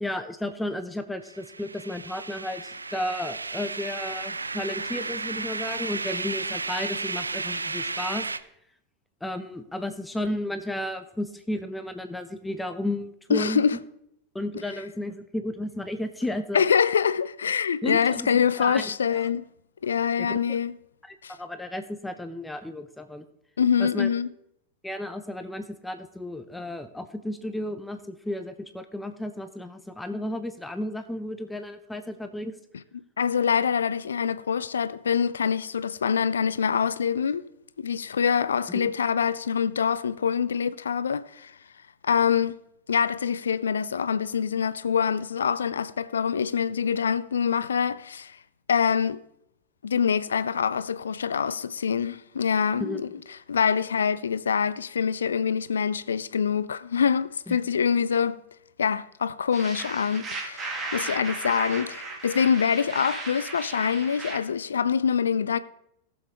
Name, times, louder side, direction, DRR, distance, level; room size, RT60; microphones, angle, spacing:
voice 1, 0.0-8.2 9.2-13.6 14.3-16.6 17.8-19.3 20.2-20.6 21.1-23.2 23.8-24.1 24.8-32.5 38.7-38.9 52.8-53.0 57.5-57.6, left 1 dB, 5° left, 0.7 m, -33 dB
sound 1, 1.3-8.4, right 3 dB, 80° right, 0.4 m, -33 dB
voice 2, 13.3-13.8 16.5-19.4 19.8-20.7 21.2-21.3 23.6-24.3 33.2-37.5 37.8-41.5 42.0-42.6 42.9-48.4 48.7-49.2 49.8-53.1 53.5-58.4 58.8-65.6, left 7 dB, 70° left, 0.4 m, -25 dB
sound 2, 59.5-64.4, right 3 dB, 20° right, 1.7 m, -36 dB
19.0 x 7.1 x 3.0 m
figure-of-eight pair, 90°, 0 cm